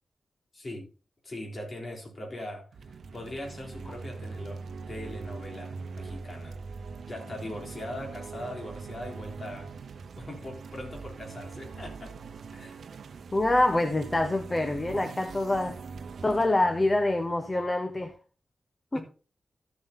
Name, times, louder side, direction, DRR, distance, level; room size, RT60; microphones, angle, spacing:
voice 1, 0.5-0.9 1.2-4.6 4.9-6.6 7.1-9.7 10.2-12.2 12.5-12.8 18.9-19.0, left 1 dB, 35° left, 3.6 m, -40 dB
sound 1, 2.7-18.1, right 4 dB, 70° right, 0.9 m, -42 dB
voice 2, 13.3-15.8 16.2-18.1 18.9-19.0, left 2 dB, 20° left, 0.9 m, -25 dB
13.0 x 7.5 x 4.2 m
wide cardioid pair, 150°, 0 cm